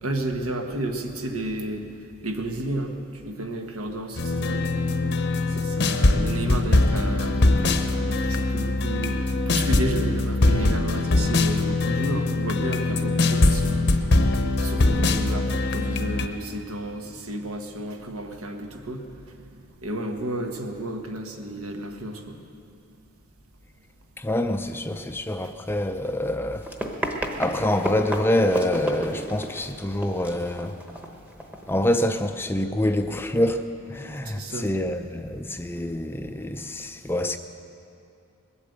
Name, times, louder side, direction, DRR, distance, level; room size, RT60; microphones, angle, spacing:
voice 1, 0.0-4.7 5.5-14.0 14.6-19.5 19.8-22.4 34.2-34.7, right 1 dB, 85° right, 1.4 m, -32 dB
sound 1, 4.2-16.3, left 2 dB, 50° left, 0.8 m, -22 dB
voice 2, 24.2-26.7 27.4-30.8 31.7-33.6 33.9-37.4, left 1 dB, 10° left, 0.4 m, -26 dB
Run, 26.5-32.0, right 1 dB, 5° right, 1.0 m, -33 dB
20.5 x 8.5 x 8.0 m
head